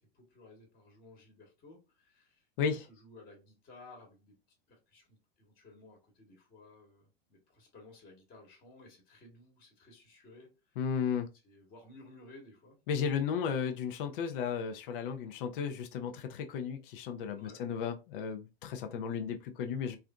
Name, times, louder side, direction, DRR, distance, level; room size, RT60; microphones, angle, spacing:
voice 1, 0.1-4.4 4.7-10.8 11.4-13.5 17.3-17.7, left 2 dB, 30° left, 1.2 m, -56 dB
voice 2, 10.8-11.3 12.9-20.0, left 7 dB, 60° left, 0.6 m, -34 dB
3.3 x 2.5 x 2.2 m
hypercardioid pair, 105°, 30 cm